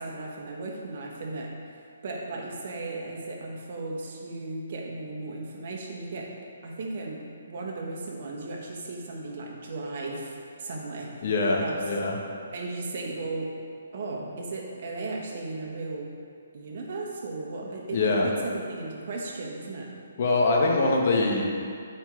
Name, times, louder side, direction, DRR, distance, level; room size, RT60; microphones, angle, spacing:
voice 1, 0.0-1.5 2.0-6.3 6.6-7.2 7.5-11.2 11.6-11.8 12.5-13.5 13.9-16.1 16.5-19.9, right 3 dB, 50° right, -2 dB, 1.5 m, -35 dB
voice 2, 11.2-12.2 17.9-18.3 20.2-21.6, left 2 dB, 45° left, -1 dB, 1.3 m, -24 dB
8.4 x 4.5 x 4.9 m, 2.3 s
hypercardioid pair, 160°, 0 cm